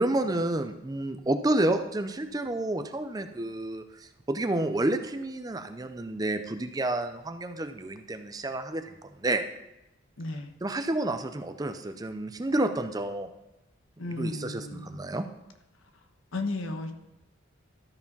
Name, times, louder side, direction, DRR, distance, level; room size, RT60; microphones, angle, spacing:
voice 1, 0.0-9.4 10.6-13.3 14.2-15.2, right 1 dB, 20° right, 9 dB, 0.5 m, -30 dB
voice 2, 10.2-10.5 14.0-15.0 16.3-16.9, left 2 dB, 80° left, 7 dB, 1.1 m, -34 dB
13.0 x 4.8 x 5.3 m, 0.93 s
head